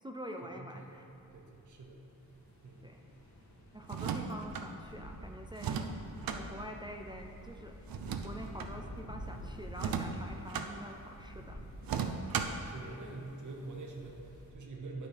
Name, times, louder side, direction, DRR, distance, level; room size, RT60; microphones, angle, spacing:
voice 1, 0.0-1.1 2.8-3.0 3.7-7.7 8.2-11.6, equal, 15° right, 2 dB, 0.3 m, -46 dB
sound 1, 0.8-14.5, equal, 55° left, 1.7 m, -49 dB
voice 2, 1.3-2.0 2.6-3.0 11.4-11.5 12.7-15.1, right 3 dB, 60° right, 0 dB, 0.8 m, -46 dB
sound 2, 3.8-4.7 5.6-6.4 7.9-8.7 9.7-10.7 11.8-12.7, right 6 dB, 85° right, 0.5 m, -36 dB
11.5 x 4.4 x 3.4 m, 2.8 s
wide cardioid pair, 115°, 35 cm